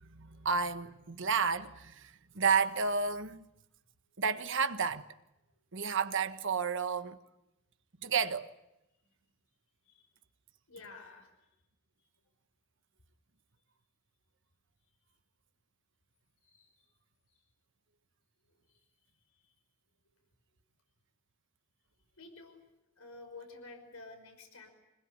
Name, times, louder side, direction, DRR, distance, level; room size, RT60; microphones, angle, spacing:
voice 1, 0.0-3.5 4.2-5.1 5.7-7.2 8.0-8.5, right 5 dB, 60° right, 1.5 m, -31 dB
voice 2, 10.7-11.5 16.4-16.7 18.7-18.8 19.3-19.5 22.2-22.6 23.0-24.7, left 3 dB, 70° left, 5.5 m, -51 dB
26.0 x 21.0 x 9.9 m
head